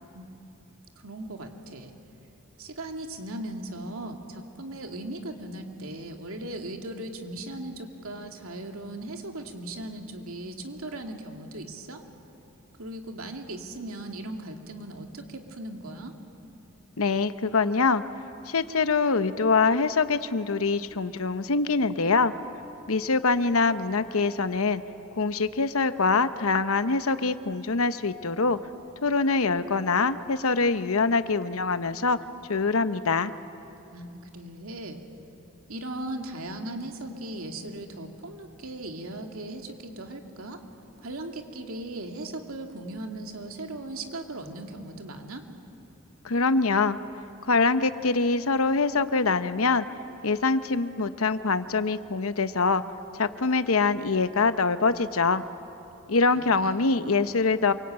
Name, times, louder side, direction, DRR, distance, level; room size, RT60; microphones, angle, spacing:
voice 1, 1.0-1.9 2.6-12.0 12.8-16.1 33.9-35.0 35.7-40.6 41.0-45.4 56.3-56.8, right 1 dB, 80° right, 4 dB, 2.5 m, -38 dB
voice 2, 17.0-18.0 18.5-22.3 22.9-24.8 25.2-28.6 29.0-32.2 32.5-33.3 46.2-47.0 47.5-49.8 50.2-52.8 53.2-55.4 56.1-57.7, left 4 dB, 85° left, 12 dB, 1.0 m, -24 dB
27.5 x 24.0 x 8.9 m, 2.9 s
head